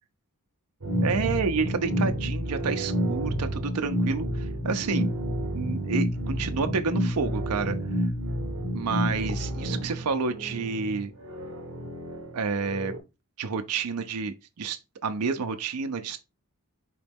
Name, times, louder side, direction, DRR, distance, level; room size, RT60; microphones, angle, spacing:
sound 1, 0.8-9.9, equal, 40° left, 0.9 m, -29 dB
sound 2, 0.8-13.0, right 3 dB, 70° right, 0.9 m, -37 dB
voice 1, 1.0-5.1 5.5-7.8 8.7-11.1 12.3-12.9 13.4-16.2, right 4 dB, 90° right, 0.5 m, -29 dB
5.0 x 3.1 x 3.4 m
head